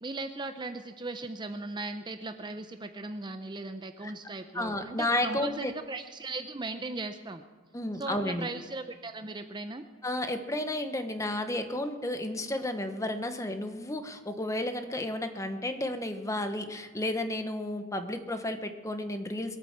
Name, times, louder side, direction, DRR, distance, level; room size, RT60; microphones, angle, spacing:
voice 1, 0.0-7.4 8.0-9.8, right 2 dB, 20° right, 8 dB, 0.6 m, -38 dB
voice 2, 4.5-5.7 7.7-8.5 10.0-19.6, left 1 dB, 15° left, 7 dB, 1.1 m, -32 dB
21.5 x 9.0 x 7.3 m, 1.4 s
head